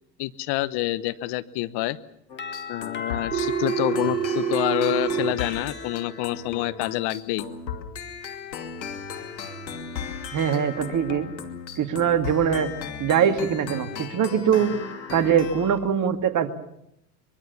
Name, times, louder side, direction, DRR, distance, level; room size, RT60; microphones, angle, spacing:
voice 1, 0.2-2.0 2.7-7.5, left 17 dB, 50° left, 15 dB, 1.1 m, -27 dB
sound 1, 2.3-15.9, left 6 dB, 90° left, 2.7 m, -36 dB
Doorbell, 2.4-5.2, left 5 dB, 20° left, 2.1 m, -38 dB
Telephone, 3.3-5.3, right 8 dB, 85° right, 1.0 m, -26 dB
voice 2, 10.3-11.3 11.8-12.7 13.0-14.8 15.1-16.5, right 8 dB, 35° right, 7 dB, 2.5 m, -22 dB
23.5 x 23.5 x 7.1 m, 0.77 s
hypercardioid pair, 90°, 50 cm